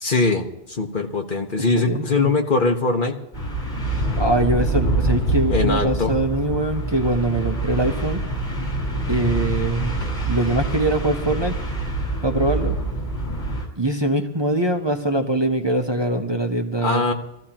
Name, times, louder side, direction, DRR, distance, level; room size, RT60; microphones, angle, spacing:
voice 1, 0.0-3.1 5.5-6.1 16.8-17.1, left 3 dB, 55° left, 3 dB, 1.5 m, -21 dB
voice 2, 1.7-2.3 3.9-8.2 9.1-10.0 10.3-11.5 12.2-12.8 13.8-17.0, right 1 dB, 25° right, 4 dB, 1.0 m, -23 dB
sound 1, 3.3-13.7, right 2 dB, 30° left, 5.5 m, -25 dB
22.5 x 14.5 x 3.0 m, 0.87 s
omnidirectional pair, 1.0 m